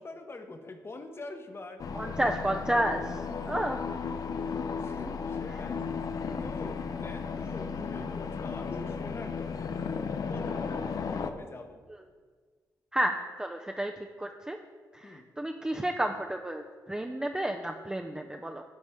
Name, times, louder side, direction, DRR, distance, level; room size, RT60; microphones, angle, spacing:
voice 1, 0.0-1.8 2.2-2.5 3.3-3.4 4.8-5.9 6.4-9.8 10.2-11.8 15.0-15.3, left 2 dB, 35° left, 6 dB, 0.9 m, -44 dB
sound 1, 1.8-11.3, left 5 dB, 55° left, 0.5 m, -34 dB
voice 2, 2.0-3.2 3.5-3.8 12.9-13.9 14.2-14.6 14.9-18.6, right 1 dB, 10° right, 3 dB, 0.5 m, -31 dB
12.0 x 4.1 x 3.6 m, 1.5 s
cardioid pair, 60°, 7 cm